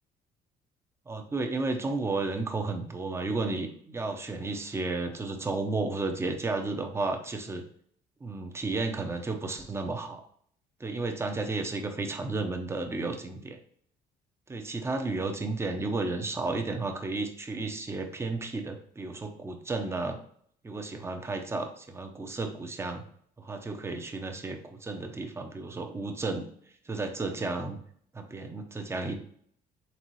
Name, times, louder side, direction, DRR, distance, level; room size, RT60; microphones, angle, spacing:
voice 1, 1.1-7.6 8.2-10.2 10.8-13.6 14.5-20.2 20.6-23.0 23.4-26.4 26.9-27.8 28.1-29.2, right 3 dB, 15° right, 4 dB, 0.6 m, -33 dB
4.1 x 3.5 x 3.1 m, 0.62 s
cardioid pair, 110°, 17 cm